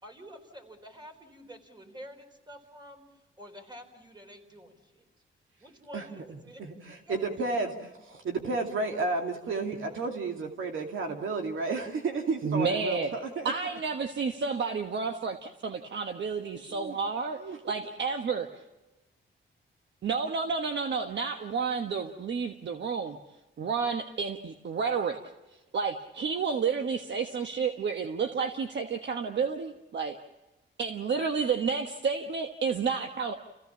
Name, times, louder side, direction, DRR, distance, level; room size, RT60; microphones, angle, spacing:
voice 1, 0.0-3.0 3.4-5.0 5.6-6.6 7.1-7.7, equal, 20° right, 5 dB, 4.2 m, -48 dB
voice 2, 6.3-7.7 8.1-13.5 16.5-17.0 17.4-17.8, right 3 dB, 80° right, 3 dB, 2.5 m, -32 dB
voice 3, 12.4-13.1 13.4-17.4 17.6-18.5 20.0-23.2 23.6-25.2 25.7-30.2 30.8-33.3, right 5 dB, 60° right, 6 dB, 1.3 m, -30 dB
29.0 x 16.0 x 7.1 m, 1.1 s
cardioid pair, 100°, 21 cm